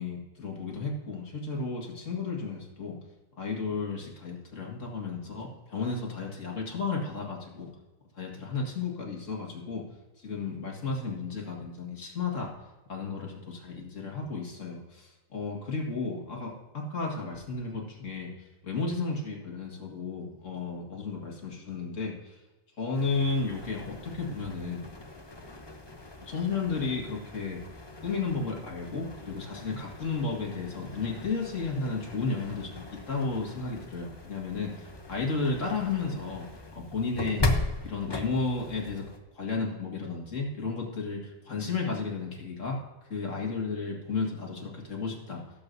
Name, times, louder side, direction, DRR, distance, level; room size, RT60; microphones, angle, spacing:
voice 1, 0.0-3.0 3.4-7.7 8.2-9.9 10.2-12.5 12.9-18.3 18.6-22.4 22.8-24.9 26.2-27.6 28.0-36.5 36.7-37.5 37.8-39.1 39.3-42.8 43.1-45.4, left 4 dB, 70° left, -1 dB, 2.3 m, -33 dB
sound 1, 22.9-39.2, left 2 dB, 20° left, 0.8 m, -38 dB
17.5 x 7.7 x 2.7 m, 1.1 s
omnidirectional pair, 1.4 m